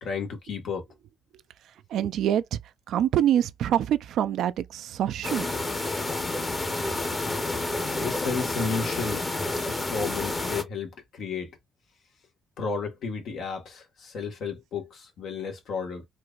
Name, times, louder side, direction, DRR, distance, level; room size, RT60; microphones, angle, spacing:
voice 1, 0.0-0.8 7.9-9.4 9.7-11.5 12.6-16.1, left 5 dB, 70° left, 1.6 m, -33 dB
voice 2, 1.9-2.6 2.9-5.5, right 10 dB, 75° right, 0.4 m, -25 dB
sound 1, 5.2-10.6, left 2 dB, 25° left, 1.0 m, -29 dB
4.5 x 2.7 x 2.5 m
cardioid pair, 90°, 0 cm